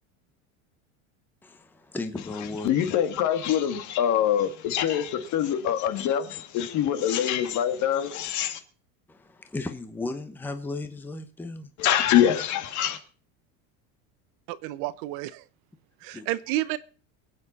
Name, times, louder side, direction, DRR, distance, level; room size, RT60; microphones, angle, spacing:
voice 1, 1.4-2.7 9.1-11.7 16.1-16.3, left 3 dB, 5° left, 0.9 m, -35 dB
voice 2, 2.6-8.6 11.8-13.0, left 10 dB, 45° left, 1.8 m, -24 dB
voice 3, 14.5-15.4 16.0-16.8, right 16 dB, 60° right, 0.9 m, -30 dB
23.5 x 8.8 x 4.2 m
supercardioid pair, 145°, 40 cm